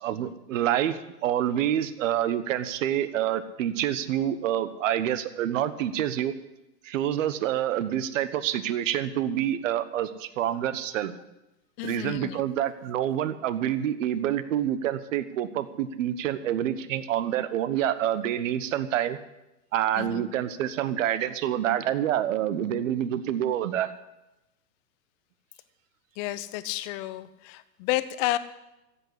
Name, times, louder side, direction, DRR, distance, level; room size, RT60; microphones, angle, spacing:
voice 1, 0.0-6.3 6.8-11.1 11.8-19.2 19.7-23.9, right 11 dB, 50° right, 13 dB, 1.3 m, -27 dB
voice 2, 11.8-12.4 20.0-20.2 26.2-28.4, left 16 dB, 25° left, 14 dB, 0.8 m, -31 dB
15.0 x 8.5 x 9.9 m, 0.94 s
hypercardioid pair, 130°, 49 cm